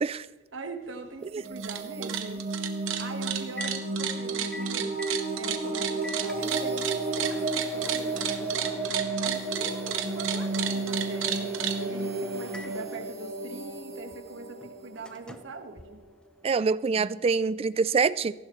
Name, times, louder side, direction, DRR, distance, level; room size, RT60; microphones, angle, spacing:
voice 1, 0.5-2.5 3.0-4.9 5.3-11.5 11.8-16.0, right 3 dB, 70° right, 6 dB, 1.4 m, -42 dB
Microwave oven, 0.9-16.6, left 1 dB, 5° left, 0.6 m, -45 dB
sound 1, 1.2-15.9, right 2 dB, 50° right, 1.9 m, -33 dB
sound 2, 1.5-1.8 2.0-11.8, right 10 dB, 90° right, 1.2 m, -31 dB
voice 2, 16.4-18.3, right 5 dB, 30° right, 18 dB, 0.3 m, -25 dB
18.0 x 15.0 x 3.1 m, 1.2 s
head